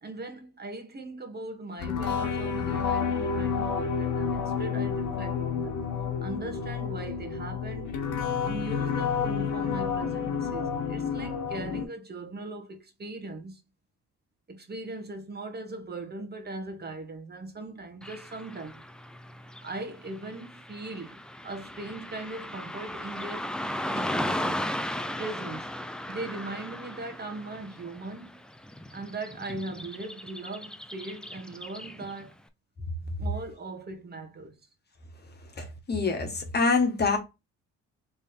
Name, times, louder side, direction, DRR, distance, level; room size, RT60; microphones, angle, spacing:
voice 1, 0.0-5.7 6.2-7.9 8.4-13.6 14.5-18.8 19.6-23.5 23.9-24.7 25.2-25.7 26.1-28.4 28.9-32.3 33.2-34.6, right 2 dB, 35° right, 1.3 m, -39 dB
sound 1, 1.8-11.8, left 6 dB, 80° left, 1.2 m, -30 dB
Car passing by / Traffic noise roadway noise, 18.0-32.3, left 1 dB, 5° left, 0.4 m, -37 dB
voice 2, 35.6-37.2, left 4 dB, 35° left, 1.4 m, -25 dB
3.4 x 3.2 x 4.3 m
cardioid pair, 90°, 30 cm